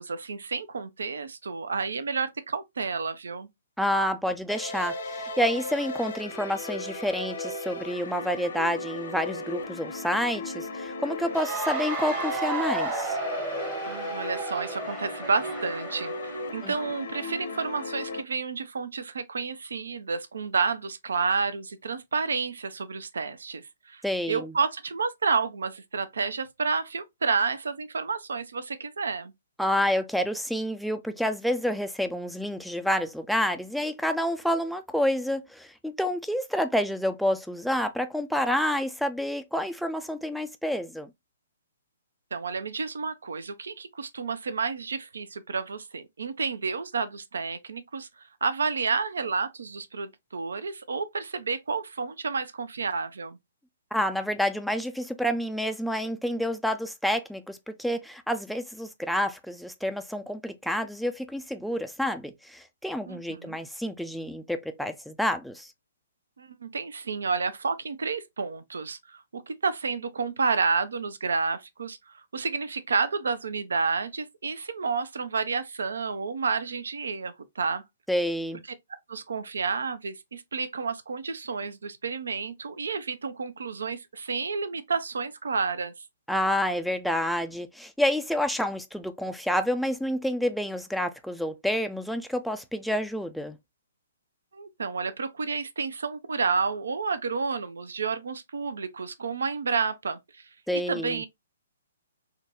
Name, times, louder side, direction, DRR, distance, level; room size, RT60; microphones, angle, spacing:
voice 1, 0.0-3.5 13.9-23.6 23.9-29.3 42.3-48.1 48.4-53.4 63.1-63.6 66.4-77.8 79.1-85.9 94.5-100.4 100.7-101.3, right 5 dB, 75° right, 0.4 m, -30 dB
voice 2, 3.8-13.2 16.6-16.7 24.0-24.5 29.6-41.1 53.9-65.7 78.1-78.6 86.3-93.6 100.7-101.2, equal, ahead, 0.3 m, -29 dB
sound 1, 4.5-18.2, left 1 dB, 65° left, 0.8 m, -36 dB
Cheering / Applause, 11.3-16.5, right 3 dB, 25° right, 0.9 m, -33 dB
3.7 x 2.2 x 2.8 m
hypercardioid pair, 130°, 0 cm